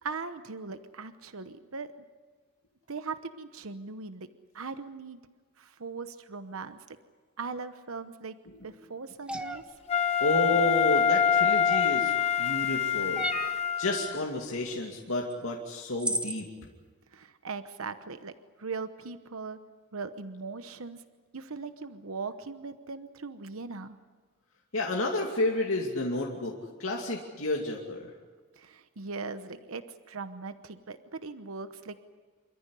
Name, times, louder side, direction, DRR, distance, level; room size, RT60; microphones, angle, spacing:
voice 1, 0.0-1.9 2.9-5.2 5.6-7.0 7.4-8.4 8.6-9.8 17.1-19.6 19.9-21.0 21.3-24.0 28.6-32.0, right 4 dB, 75° right, 10 dB, 1.0 m, -39 dB
sound 1, 9.3-9.6 11.7-12.1 13.2-13.6 15.3-15.4 16.0-16.4, right 1 dB, 5° right, 0.9 m, -33 dB
Wind instrument woodwind instrument, 9.9-14.2, left 8 dB, 30° left, 1.2 m, -25 dB
voice 2, 10.2-13.3 13.8-16.5 24.7-26.5 26.8-28.1, left 2 dB, 70° left, -1 dB, 2.5 m, -31 dB
27.5 x 14.5 x 9.9 m, 1.4 s
head